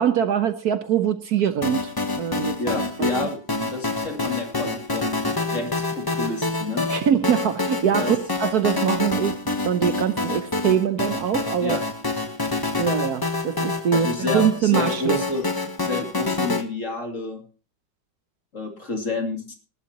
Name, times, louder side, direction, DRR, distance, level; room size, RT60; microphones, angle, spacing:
voice 1, 0.0-3.1 3.6-3.7 6.9-9.4 9.6-11.8 12.8-15.2, right 9 dB, 60° right, 1.2 m, -23 dB
sound 1, 1.6-16.6, left 3 dB, 15° left, 0.8 m, -27 dB
voice 2, 2.6-6.9 8.0-8.2 11.6-11.8 13.9-15.5 15.8-17.4 18.5-19.6, left 3 dB, 40° left, 2.8 m, -29 dB
19.5 x 11.5 x 2.9 m
omnidirectional pair, 2.0 m